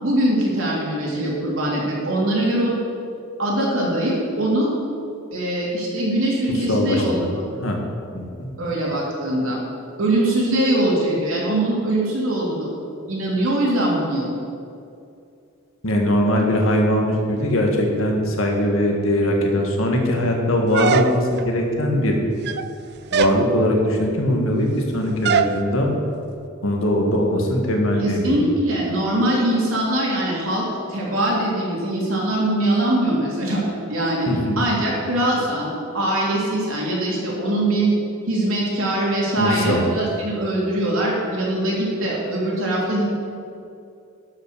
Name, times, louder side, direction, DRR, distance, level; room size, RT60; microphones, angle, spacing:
voice 1, 0.0-2.7 3.4-4.7 5.3-7.5 8.6-9.6 10.0-12.7 13.1-14.4 28.0-34.3 34.6-37.9 38.3-43.0, right 1 dB, 70° right, -4 dB, 2.9 m, -22 dB
voice 2, 6.7-7.3 7.6-7.8 8.1-8.5 15.8-22.2 23.1-25.9 26.6-28.4 34.3-34.6 39.4-39.8, left 1 dB, 65° left, 1 dB, 1.7 m, -21 dB
sound 1, 20.7-21.5 22.3-22.7 23.1-23.4 25.2-25.6, right 7 dB, 50° right, 0.4 m, -21 dB
11.5 x 5.8 x 6.5 m, 2.5 s
head